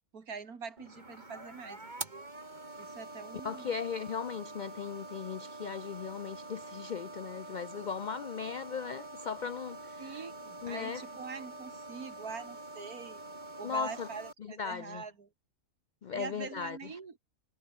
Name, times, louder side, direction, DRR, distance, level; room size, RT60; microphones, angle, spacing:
voice 1, 0.1-2.3 2.8-3.7 10.0-13.2 13.6-15.3 16.1-17.2, right 5 dB, 85° right, 2.7 m, -44 dB
sound 1, 0.8-14.3, right 2 dB, 30° right, 3.2 m, -46 dB
voice 2, 3.4-10.2 10.6-11.0 13.6-14.1 14.4-15.0 16.0-16.9, left 6 dB, 80° left, 0.4 m, -37 dB
omnidirectional pair, 1.5 m